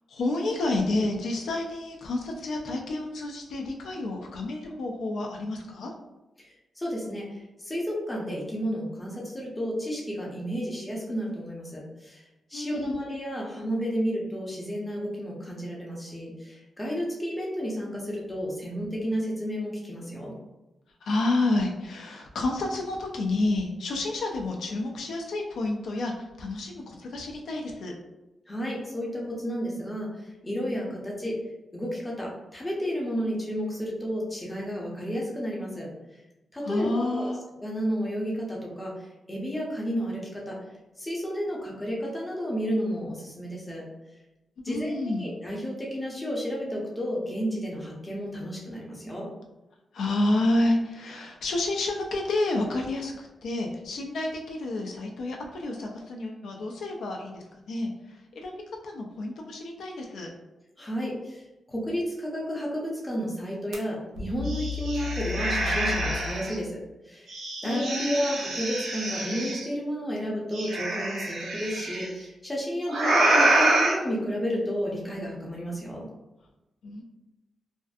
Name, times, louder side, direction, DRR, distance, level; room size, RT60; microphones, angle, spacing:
voice 1, 0.1-5.9 12.5-13.0 21.0-27.9 36.6-37.4 44.7-45.3 49.9-58.5 58.8-60.3 67.6-68.3 76.8-77.0, left 2 dB, 75° left, 1 dB, 0.4 m, -29 dB
voice 2, 6.8-12.2 12.5-20.3 28.5-31.4 31.7-35.9 36.5-37.3 37.6-38.9 39.3-40.6 41.0-43.8 44.6-49.3 60.8-61.4 61.7-66.8 67.1-67.4 67.6-76.0, equal, 10° left, -4 dB, 0.6 m, -32 dB
sound 1, 63.7-63.8 64.2-66.6 67.3-69.7 70.5-72.1 72.9-73.9, right 1 dB, 80° right, 0.6 m, -26 dB
2.5 x 2.4 x 2.3 m, 1.0 s
wide cardioid pair, 150°, 0 cm